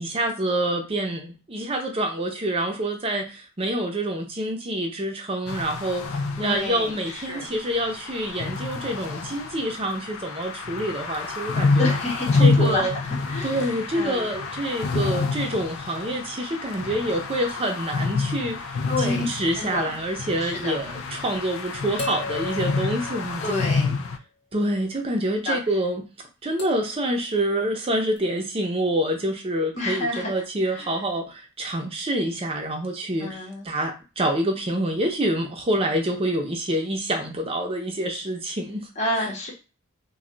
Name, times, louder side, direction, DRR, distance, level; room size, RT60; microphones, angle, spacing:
voice 1, 0.0-11.9 12.4-13.0 13.4-18.6 19.0-23.7 24.5-26.0 26.4-38.8 39.2-39.3, right 1 dB, 30° right, 3 dB, 0.6 m, -27 dB
sound 1, 5.5-24.2, left 3 dB, 80° left, 0.4 m, -28 dB
voice 2, 6.4-7.5 11.8-14.3 18.9-19.9 20.4-20.8 23.4-24.0 25.4-25.6 29.8-30.9 33.2-33.7 39.0-39.5, left 1 dB, 35° left, -1 dB, 0.9 m, -30 dB
sound 2, 20.6-20.7 22.0-24.0 26.6-27.0 28.2-28.3, left 3 dB, 60° left, 1.0 m, -36 dB
2.3 x 2.2 x 3.8 m, 0.31 s
head